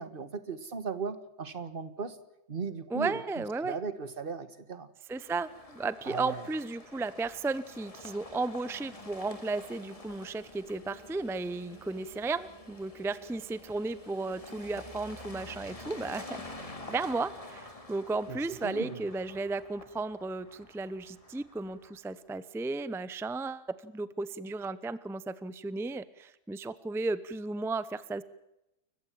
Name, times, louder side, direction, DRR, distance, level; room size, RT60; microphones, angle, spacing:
voice 1, 0.0-2.2 2.5-4.9 6.0-6.4 18.3-19.0, right 5 dB, 40° right, 13 dB, 1.6 m, -37 dB
voice 2, 2.9-3.7 5.1-28.2, right 3 dB, 5° right, 16 dB, 0.5 m, -34 dB
sound 1, 5.1-22.1, left 2 dB, 25° left, 2.5 m, -48 dB
29.5 x 15.0 x 7.5 m, 0.89 s
omnidirectional pair, 1.5 m